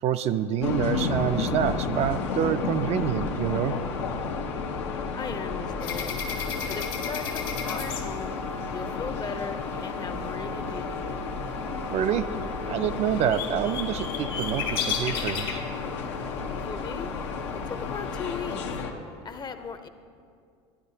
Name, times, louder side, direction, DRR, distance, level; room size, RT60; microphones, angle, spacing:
voice 1, 0.0-3.8 11.9-12.3 12.7-15.6, right 9 dB, 50° right, 10 dB, 0.4 m, -27 dB
sound 1, 0.6-18.9, left 4 dB, 85° left, 0.7 m, -32 dB
voice 2, 5.1-6.2 6.7-8.4 8.7-10.9 16.6-17.1 17.6-18.6 19.2-19.9, left 6 dB, 30° left, 9 dB, 0.6 m, -37 dB
sound 2, 5.8-8.8 12.4-12.5 12.7-15.7 17.4-17.5 17.9-18.6, left 6 dB, 70° left, 1.4 m, -33 dB
12.0 x 10.0 x 2.7 m, 2.3 s
hypercardioid pair, 75°, 14 cm